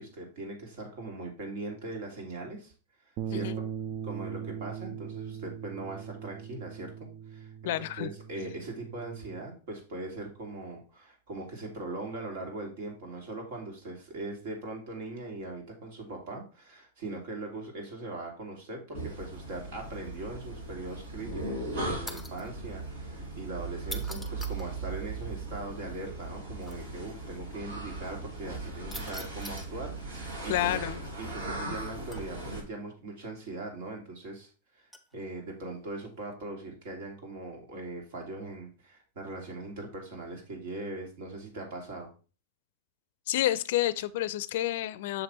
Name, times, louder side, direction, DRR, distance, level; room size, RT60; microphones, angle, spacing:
voice 1, 0.0-2.7 3.0-3.6 4.0-30.8 31.2-34.5 34.7-42.1, right 2 dB, 65° right, 2.4 m, -40 dB
sound 1, 3.2-9.4, right 8 dB, 50° right, 0.4 m, -40 dB
voice 2, 7.7-8.1 30.5-31.0 43.3-45.2, left 14 dB, 65° left, 0.4 m, -29 dB
sound 2, 18.9-32.6, right 2 dB, 85° right, 2.9 m, -38 dB
sound 3, 22.1-22.5 23.8-24.7 26.6-26.8 28.9-29.7 32.1-32.5 34.9-35.1 36.1-36.3, left 1 dB, ahead, 0.7 m, -43 dB
6.6 x 3.4 x 4.3 m
hypercardioid pair, 120°, 0 cm